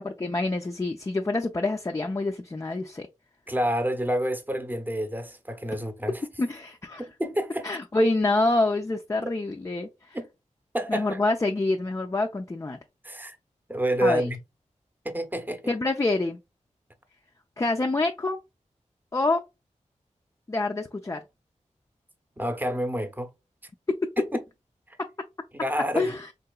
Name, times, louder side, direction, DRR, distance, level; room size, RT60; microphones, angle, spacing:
voice 1, 0.0-3.1 6.4-7.0 7.6-10.2 10.9-12.8 14.0-14.3 15.7-16.4 17.6-18.4 19.1-19.4 20.5-21.2 24.0-24.1 25.0-25.1 25.9-26.3, left 2 dB, 25° left, 0.4 m, -26 dB
voice 2, 3.5-6.2 7.0-7.7 10.1-10.2 10.7-11.3 13.0-13.4 13.7-14.4 15.0-15.7 22.4-23.3 24.9-25.0 25.5-26.2, equal, 15° right, 0.7 m, -28 dB
3.9 x 2.8 x 2.2 m
cardioid pair, 55°, 13 cm